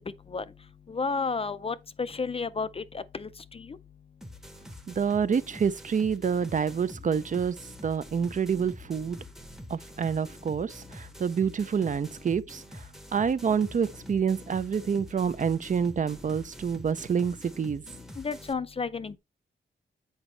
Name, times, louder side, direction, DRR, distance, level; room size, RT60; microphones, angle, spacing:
voice 1, 0.9-3.8 18.2-19.2, left 4 dB, 30° left, 0.3 m, -32 dB
sound 1, 4.2-18.5, equal, ahead, 0.7 m, -46 dB
voice 2, 4.9-7.6 7.8-9.2 9.7-17.8, right 6 dB, 40° right, 0.4 m, -28 dB
8.0 x 5.0 x 3.2 m
wide cardioid pair, 170°, 20 cm